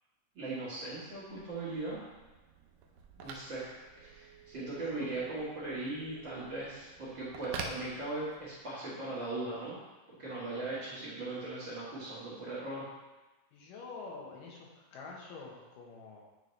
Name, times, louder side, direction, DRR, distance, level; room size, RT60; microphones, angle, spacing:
voice 1, 0.4-2.0 3.2-3.7 4.0-9.8 10.2-12.9, right 2 dB, 45° right, -9 dB, 1.9 m, -39 dB
Telephone, 0.8-8.7, right 4 dB, 75° right, 1.8 m, -48 dB
voice 2, 4.9-5.3 10.5-10.8 13.5-16.2, left 4 dB, 85° left, -2 dB, 2.7 m, -47 dB
9.2 x 4.1 x 3.2 m, 1.1 s
omnidirectional pair, 3.8 m